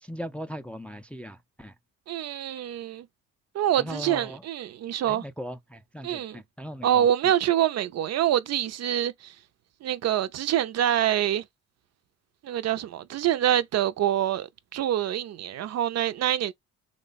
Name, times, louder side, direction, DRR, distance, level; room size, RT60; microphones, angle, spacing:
voice 1, 0.0-1.7 3.8-4.4 5.1-7.1, equal, 5° left, 0.4 m, -39 dB
voice 2, 2.1-3.1 3.5-5.2 6.0-6.4 6.8-9.3 9.8-11.4 12.4-16.5, right 11 dB, 60° right, 0.5 m, -25 dB
3.2 x 2.1 x 3.8 m
cardioid pair, 90°, 30 cm